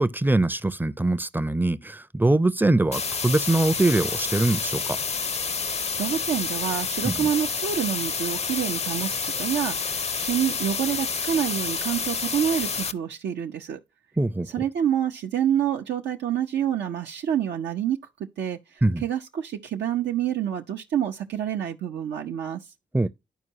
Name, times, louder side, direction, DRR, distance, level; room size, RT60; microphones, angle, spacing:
voice 1, 0.0-5.0 7.0-7.3 14.2-14.5 18.8-19.0 22.9-23.1, right 2 dB, 10° right, 0.5 m, -23 dB
sound 1, 2.9-12.9, left 5 dB, 35° left, 0.5 m, -29 dB
voice 2, 6.0-13.8 14.5-18.0 18.4-18.6 19.0-22.6, right 9 dB, 75° right, 0.6 m, -27 dB
11.0 x 4.5 x 2.7 m
supercardioid pair, 40°, 18 cm